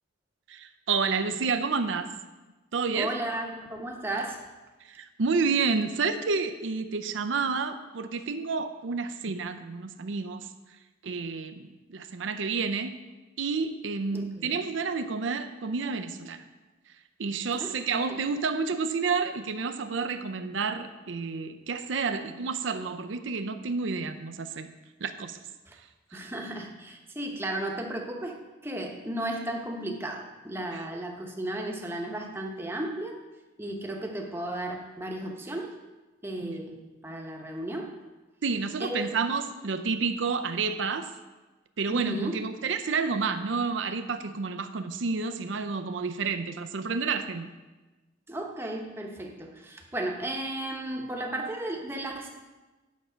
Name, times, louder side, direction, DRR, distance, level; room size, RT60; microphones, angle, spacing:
voice 1, 0.5-2.1 2.7-3.1 4.9-10.5 11.0-13.0 13.4-16.4 17.2-24.7 25.0-25.4 26.1-26.3 30.7-30.8 36.4-36.6 38.4-41.1 41.8-47.5, right 4 dB, 75° right, 8 dB, 0.6 m, -30 dB
voice 2, 2.9-4.4 14.1-14.6 17.6-18.2 25.7-25.8 26.1-33.2 33.6-35.7 36.2-36.8 37.0-37.9 38.8-39.1 41.9-42.4 48.3-52.4, right 1 dB, 10° right, 1 dB, 1.0 m, -34 dB
9.3 x 7.0 x 5.1 m, 1.2 s
head